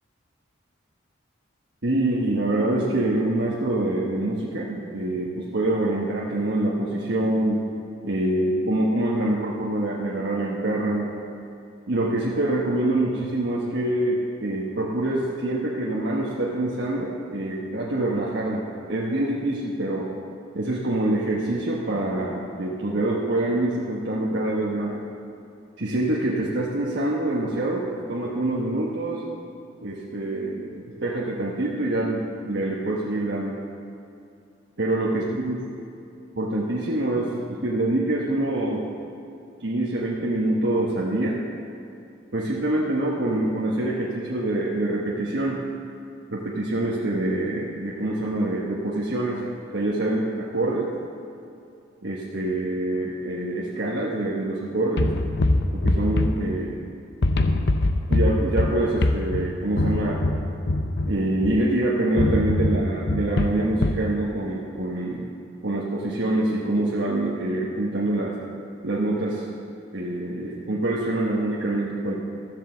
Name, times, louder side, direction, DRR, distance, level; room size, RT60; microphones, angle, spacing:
voice 1, 1.8-7.7 8.0-11.1 11.9-18.6 18.9-20.1 20.5-24.9 25.8-29.2 29.8-33.5 34.8-35.7 36.4-38.9 39.6-41.4 42.3-45.6 46.3-49.4 49.7-50.9 52.0-55.1 55.7-56.8 58.1-60.2 61.1-65.3 65.6-68.4 68.8-69.4 69.9-72.1, right 1 dB, 65° right, -5 dB, 1.3 m, -25 dB
sound 1, 55.0-56.9 57.2-61.7 62.2-64.1, left 2 dB, 55° left, 0.7 m, -23 dB
13.0 x 7.7 x 7.1 m, 2.6 s
head